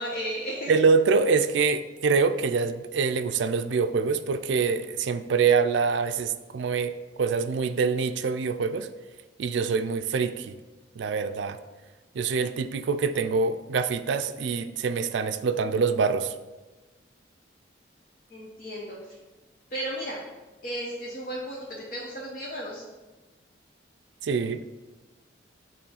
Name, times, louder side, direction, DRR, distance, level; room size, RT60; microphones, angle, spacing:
voice 1, 0.0-0.7 18.3-19.0 19.7-20.2 20.6-21.6 21.9-22.8, right 1 dB, 45° left, -4 dB, 1.0 m, -34 dB
voice 2, 0.7-8.9 9.4-10.6 11.0-11.6 12.1-16.3 24.2-24.7, right 5 dB, 70° right, 10 dB, 0.4 m, -25 dB
6.9 x 3.1 x 5.6 m, 1.2 s
head